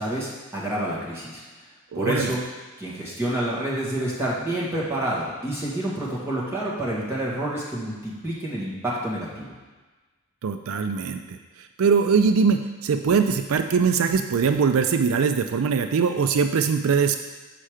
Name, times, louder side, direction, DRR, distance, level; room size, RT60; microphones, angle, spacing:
voice 1, 0.0-1.4 2.0-2.4 2.8-9.6, right 1 dB, 10° right, -7 dB, 1.9 m, -28 dB
voice 2, 1.9-2.3 10.4-11.4 11.8-17.2, right 5 dB, 75° right, 7 dB, 0.4 m, -21 dB
7.5 x 5.5 x 4.9 m, 1.3 s
head